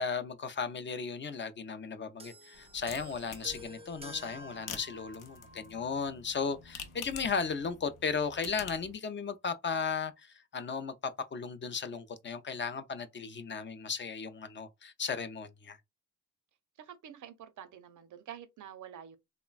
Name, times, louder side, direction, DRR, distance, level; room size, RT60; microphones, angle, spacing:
voice 1, 0.0-15.8, left 5 dB, 40° left, 0.4 m, -35 dB
sound 1, 2.2-5.8 6.7-6.8, right 1 dB, 20° right, 0.5 m, -50 dB
sound 2, 2.5-8.9, left 6 dB, 85° left, 0.6 m, -48 dB
voice 2, 16.8-19.2, right 9 dB, 70° right, 0.5 m, -48 dB
3.1 x 2.1 x 2.3 m
cardioid pair, 95°, 31 cm